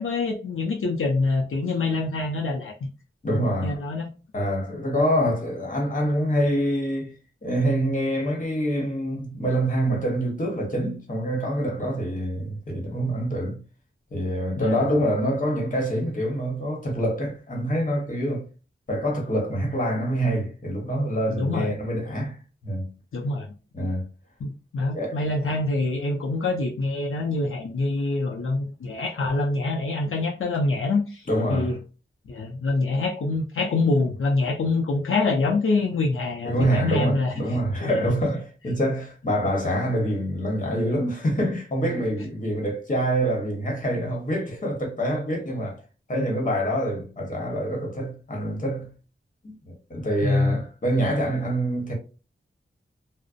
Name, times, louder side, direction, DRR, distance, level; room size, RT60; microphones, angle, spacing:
voice 1, 0.0-2.9 3.3-4.1 14.6-14.8 21.3-21.7 23.1-23.5 24.4-31.8 32.3-37.3 37.8-38.0 46.1-46.3 50.2-50.6, left 3 dB, 80° left, 0.5 m, -25 dB
voice 2, 3.2-3.8 4.3-7.1 7.4-13.6 14.1-18.5 18.9-22.9 23.7-24.1 24.9-25.2 31.3-31.7 36.4-45.8 46.1-48.9 49.4-51.9, equal, 40° left, 1.0 m, -26 dB
2.6 x 2.0 x 2.4 m
wide cardioid pair, 65°, 21 cm